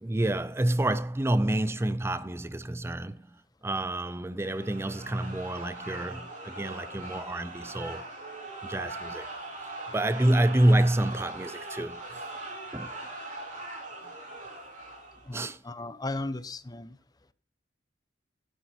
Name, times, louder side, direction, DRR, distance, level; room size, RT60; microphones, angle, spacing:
voice 1, 0.0-8.1 8.6-9.3 9.9-12.2 12.7-12.9 15.3-15.6, right 1 dB, 15° right, 0.4 m, -28 dB
sound 1, 4.4-15.4, right 2 dB, 45° right, 4.2 m, -41 dB
voice 2, 15.2-17.0, left 2 dB, 20° left, 0.7 m, -36 dB
12.0 x 9.2 x 4.2 m
head